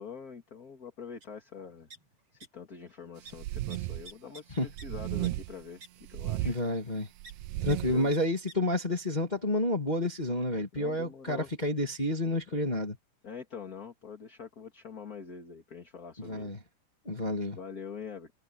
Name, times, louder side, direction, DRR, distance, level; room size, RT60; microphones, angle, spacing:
voice 1, 0.0-1.9 2.3-6.6 7.6-8.1 10.7-11.5 12.5-12.8 13.2-16.5 17.5-18.3, left 6 dB, 30° left, 2.3 m, -45 dB
sound 1, 1.2-1.3 1.6-2.5 2.7-3.0 3.3-3.4 3.7-4.9 5.2-5.3 5.8-5.9 7.2-7.3 7.7-7.8 8.1-8.2 8.5-8.6, right 3 dB, 45° right, 8.0 m, -49 dB
sound 2, 3.3-4.1 4.7-5.6 6.0-6.6 7.2-8.0, right 17 dB, 80° right, 1.6 m, -34 dB
voice 2, 6.4-7.1 7.6-13.0 16.2-16.6 17.1-17.6, left 1 dB, 15° left, 1.8 m, -30 dB
omnidirectional pair, 3.7 m